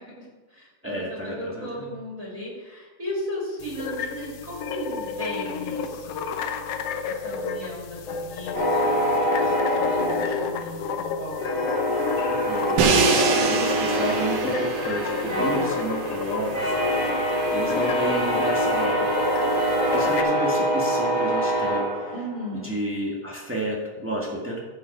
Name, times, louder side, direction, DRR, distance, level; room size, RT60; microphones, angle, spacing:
voice 1, 0.0-6.2 7.0-11.4 15.2-15.7 22.1-22.7, equal, 25° right, -4 dB, 2.6 m, -36 dB
voice 2, 0.8-1.9 12.3-16.7 17.5-19.1 19.9-22.1 22.5-24.6, right 1 dB, 10° right, -3 dB, 0.6 m, -31 dB
sound 1, 3.6-20.2, left 5 dB, 90° left, 1.3 m, -31 dB
sound 2, 8.5-11.0 11.4-22.6, equal, 30° left, 3.6 m, -25 dB
Crash cymbal, 12.8-18.8, right 5 dB, 75° right, 2.5 m, -27 dB
15.5 x 5.5 x 4.6 m, 1.2 s
omnidirectional pair, 3.7 m